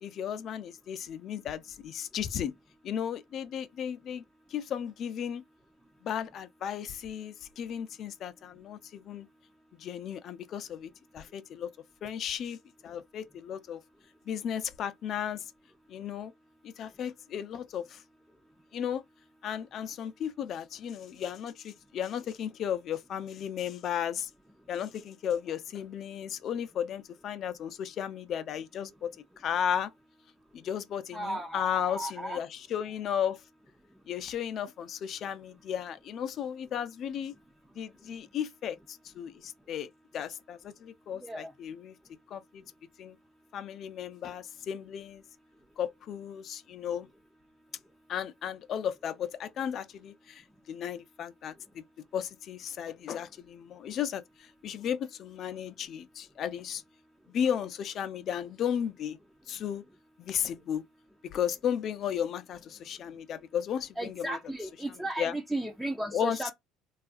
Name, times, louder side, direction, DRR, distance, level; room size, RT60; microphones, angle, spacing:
voice 1, 0.0-2.5 2.8-4.2 4.5-5.4 6.0-9.3 9.7-11.7 12.0-12.6 12.8-13.8 14.3-15.5 15.9-16.3 16.6-18.0 18.7-19.0 19.4-24.3 24.7-29.9 30.5-33.4 34.1-37.3 37.7-41.9 42.3-42.6 43.0-43.2 43.5-45.2 45.8-47.1 48.1-51.8 52.1-56.8 57.3-59.2 59.5-59.8 60.2-60.8 61.2-64.4 65.2-65.3 66.1-66.5, left 9 dB, 50° left, 0.4 m, -34 dB
voice 2, 31.1-32.4 41.2-41.5 64.0-66.5, right 1 dB, 5° right, 0.5 m, -35 dB
2.7 x 2.4 x 2.4 m
supercardioid pair, 110°, 0 cm